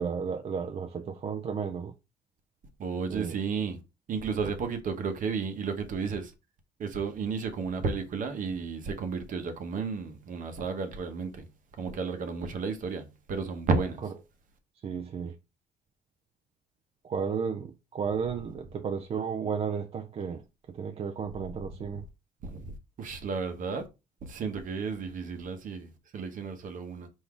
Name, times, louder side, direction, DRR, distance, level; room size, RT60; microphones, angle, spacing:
voice 1, 0.0-1.9 3.1-3.4 14.8-15.3 17.0-20.4 20.7-22.0, right 6 dB, 35° right, 0.4 m, -33 dB
voice 2, 2.8-3.8 4.1-6.3 6.8-11.5 11.8-14.0 21.9-22.0 22.4-23.9 24.2-27.1, right 5 dB, 50° right, 0.9 m, -33 dB
4.6 x 2.7 x 3.6 m
cardioid pair, 110°, 17 cm